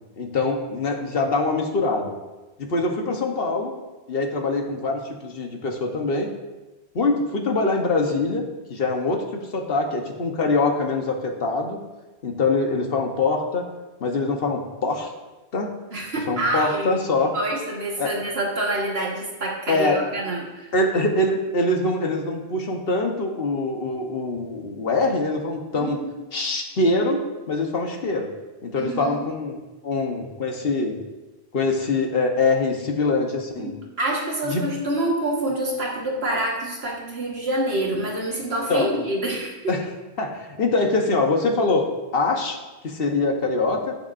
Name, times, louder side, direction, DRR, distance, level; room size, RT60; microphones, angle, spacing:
voice 1, 0.2-2.2 2.6-3.7 4.1-6.3 6.9-8.4 8.7-11.8 12.2-13.7 14.0-15.1 15.5-15.7 16.3-17.3 18.0-18.2 19.7-20.0 20.7-26.0 26.3-28.3 28.6-29.6 29.8-31.0 31.5-33.7 34.5-34.7 38.7-38.9 39.7-39.9 40.2-41.9 42.1-43.9, left 3 dB, 60° left, 3 dB, 1.3 m, -24 dB
voice 2, 15.9-20.7 25.7-26.1 28.8-29.2 33.6-39.8, right 1 dB, 70° right, -3 dB, 1.8 m, -27 dB
17.0 x 6.9 x 2.6 m, 1.1 s
omnidirectional pair, 1.1 m